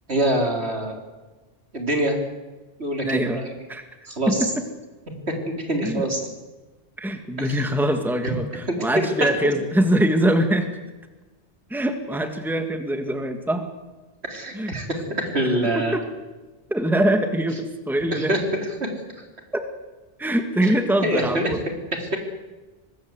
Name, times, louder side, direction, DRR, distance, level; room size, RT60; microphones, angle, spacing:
voice 1, 0.1-1.0 1.7-2.2 2.8-3.5 4.1-4.4 5.5-6.2 7.5-7.6 8.7-9.5 14.2-14.9 15.2-16.0 18.1-18.4 18.8-18.9 20.6-20.8 21.0-21.5 22.0-22.2, right 1 dB, 70° right, 2 dB, 4.2 m, -25 dB
voice 2, 3.0-3.4 3.7-3.8 4.3-4.6 5.8-6.1 7.0-10.7 11.7-13.7 14.5-14.8 15.6-16.0 16.7-18.3 19.5-19.6 20.2-21.6, right 1 dB, ahead, 6 dB, 1.9 m, -23 dB
24.5 x 20.0 x 8.1 m, 1.2 s
omnidirectional pair, 1.1 m